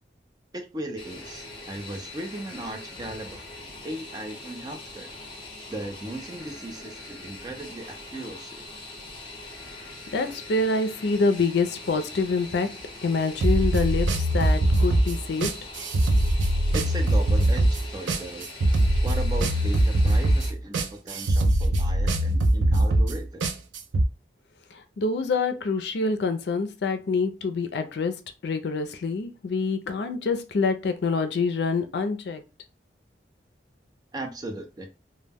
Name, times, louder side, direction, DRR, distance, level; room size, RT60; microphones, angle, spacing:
voice 1, 0.5-5.1 5.7-8.6 16.7-18.5 19.0-23.4 34.1-34.9, right 1 dB, 20° right, 0.4 m, -37 dB
Fixed-wing aircraft airplane, 1.0-20.5, left 2 dB, 30° left, 0.6 m, -42 dB
voice 2, 10.1-12.7 13.0-15.5 24.7-28.1 28.4-32.4, left 4 dB, 70° left, 0.4 m, -26 dB
sound 1, 13.4-24.1, right 1 dB, 90° right, 0.4 m, -22 dB
2.1 x 2.1 x 3.3 m
head